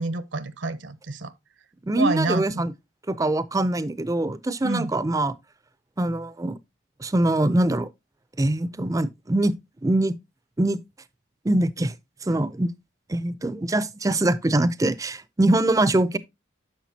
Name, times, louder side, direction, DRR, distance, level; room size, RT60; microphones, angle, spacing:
voice 1, 0.0-1.3 2.0-2.6 4.6-4.9, right 2 dB, 65° right, 0.7 m, -28 dB
voice 2, 1.9-2.7 3.1-5.3 6.0-6.6 7.0-7.9 8.4-9.5 9.8-10.1 10.6-10.8 11.4-11.9 12.2-12.7 13.1-16.2, right 1 dB, 15° right, 0.4 m, -23 dB
10.0 x 6.5 x 2.8 m
head